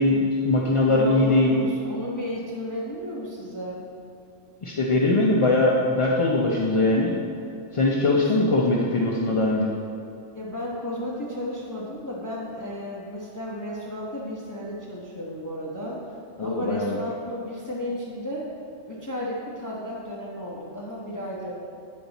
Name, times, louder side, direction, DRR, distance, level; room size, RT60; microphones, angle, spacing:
voice 1, 0.0-1.6 4.6-7.2 7.7-9.7 16.4-17.0, left 2 dB, 45° left, -3 dB, 0.4 m, -21 dB
voice 2, 0.9-3.8 8.4-8.9 10.3-16.0 16.4-18.5 18.9-21.5, left 1 dB, 20° left, -5 dB, 0.8 m, -33 dB
8.5 x 5.3 x 4.0 m, 2.6 s
omnidirectional pair, 1.3 m